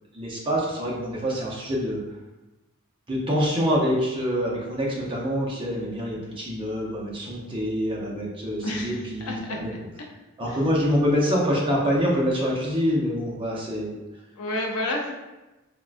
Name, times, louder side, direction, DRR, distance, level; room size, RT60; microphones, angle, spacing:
voice 1, 0.1-2.0 3.1-9.7 10.4-14.0, equal, 25° right, -4 dB, 0.6 m, -25 dB
voice 2, 8.6-10.1 10.5-10.6 14.4-15.1, left 1 dB, 85° left, 1 dB, 0.5 m, -31 dB
3.5 x 2.2 x 2.5 m, 1.1 s
head